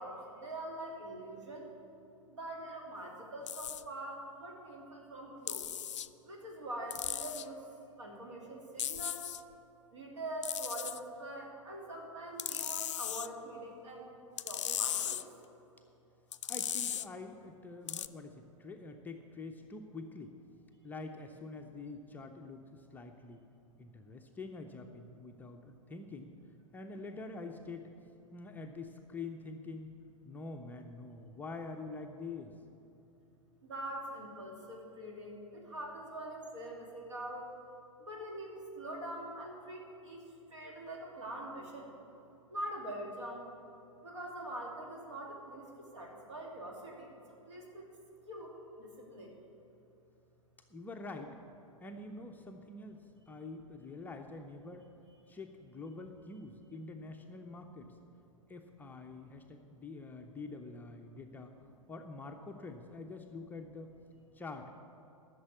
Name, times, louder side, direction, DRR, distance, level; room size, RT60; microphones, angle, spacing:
voice 1, 0.0-1.7 2.4-5.7 6.3-7.6 8.0-9.3 9.9-14.1 14.4-15.2 33.6-37.5 38.1-40.2 40.5-41.9 42.5-43.5 44.0-47.1 47.5-47.9 48.3-48.5 48.8-49.3, right 1 dB, 60° right, 0 dB, 2.7 m, -44 dB
sound 1, 3.5-3.8 5.5-6.1 6.9-7.5 8.8-9.4 10.4-11.0 12.4-13.3 14.4-15.2 16.3-17.1 17.9-18.1, left 10 dB, 60° left, 0.4 m, -37 dB
voice 2, 16.5-20.4 20.8-23.4 23.8-26.3 26.7-27.9 28.3-29.9 30.2-32.6 50.7-51.3 51.8-54.9 55.3-58.0 58.5-61.6 61.9-63.9 64.3-64.7, left 3 dB, 10° left, 3 dB, 0.6 m, -46 dB
13.0 x 6.7 x 8.3 m, 2.9 s
figure-of-eight pair, 100°, 17 cm